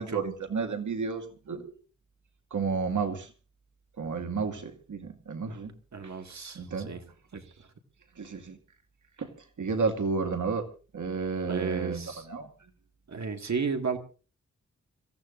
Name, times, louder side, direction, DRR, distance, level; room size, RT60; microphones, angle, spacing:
voice 1, 0.0-1.7 2.5-3.3 4.0-5.7 6.0-6.1 6.5-6.9 8.2-8.6 9.2-9.3 9.6-10.7 10.9-12.5, right 5 dB, 80° right, 5 dB, 2.1 m, -31 dB
voice 2, 5.9-7.0 7.3-7.4 11.5-12.3 13.1-14.0, right 5 dB, 65° right, 5 dB, 2.0 m, -33 dB
26.5 x 15.0 x 2.6 m, 0.36 s
wide cardioid pair, 80°, 30 cm